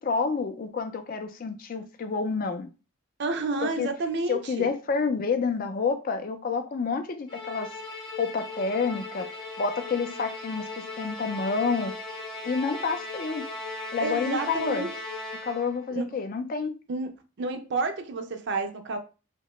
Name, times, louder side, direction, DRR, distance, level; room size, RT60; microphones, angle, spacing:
voice 1, 0.0-2.7 3.6-3.9 4.3-9.3 9.6-11.9 12.4-13.4 13.9-14.9 15.3-16.8, left 5 dB, 45° left, 0.4 m, -29 dB
voice 2, 3.2-4.7 14.0-14.9 15.9-16.0 16.9-17.1 17.4-19.0, right 3 dB, 55° right, 0.4 m, -30 dB
Musical instrument, 7.3-15.8, left 3 dB, 25° left, 0.8 m, -37 dB
2.8 x 2.1 x 3.0 m
head